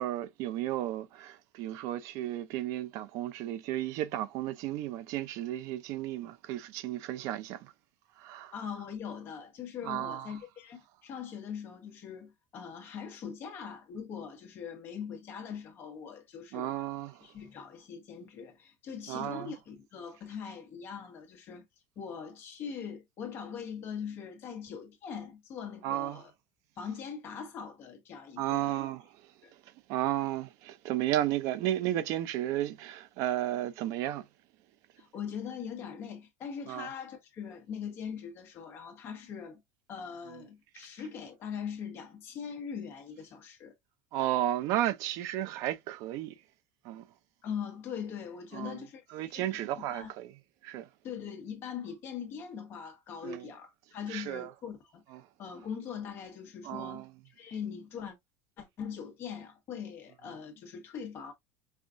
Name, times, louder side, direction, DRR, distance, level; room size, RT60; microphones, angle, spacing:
voice 1, 0.0-7.7 8.2-8.5 9.8-10.3 16.5-17.2 19.1-19.5 25.8-26.2 28.4-29.0 29.9-34.2 36.7-36.9 44.1-46.3 46.8-47.0 48.5-48.8 49.1-50.3 50.6-50.9 53.2-53.5 54.1-54.5 55.1-55.2 56.6-57.1, right 13 dB, 50° right, 0.5 m, -33 dB
voice 2, 8.5-16.7 17.2-21.6 21.9-26.3 26.8-28.8 29.4-29.5 35.0-39.6 39.9-43.7 47.4-50.1 51.0-55.0 55.4-58.2 58.6-61.3, left 7 dB, 35° left, 1.3 m, -41 dB
5.5 x 2.4 x 2.5 m
cardioid pair, 160°, 7 cm